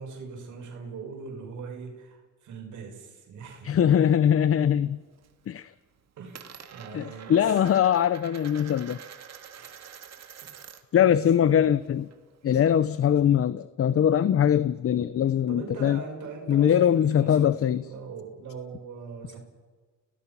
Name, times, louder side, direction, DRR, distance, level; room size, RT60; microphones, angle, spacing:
voice 1, 0.0-4.1 6.2-7.6 9.5-9.7 10.4-10.7 11.0-11.6 15.5-19.4, right 5 dB, 75° right, 6.2 m, -41 dB
Coin (dropping), 3.5-4.6 5.0-5.5 5.7-11.0 11.3-13.0, right 8 dB, 60° right, 2.4 m, -46 dB
voice 2, 3.6-5.0 5.5-5.7 6.9-9.0 10.9-12.1 12.4-16.0 16.5-17.9, left 9 dB, 50° left, 0.8 m, -22 dB
29.5 x 18.5 x 5.8 m
cardioid pair, 90°, 30 cm